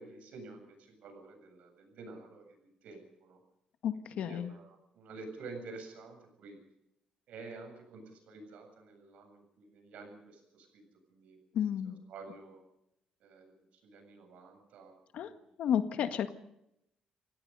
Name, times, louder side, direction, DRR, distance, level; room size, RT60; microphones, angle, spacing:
voice 1, 0.0-3.4 4.1-6.6 7.3-10.8 11.1-11.4 11.8-12.6 13.2-13.5 13.8-15.5, right 3 dB, 75° right, 5 dB, 7.9 m, -50 dB
voice 2, 3.8-4.5 11.5-12.0 15.1-15.3 15.6-16.3, left 9 dB, 70° left, 9 dB, 1.7 m, -32 dB
29.0 x 17.0 x 5.5 m, 0.79 s
cardioid pair, 135°, 2 cm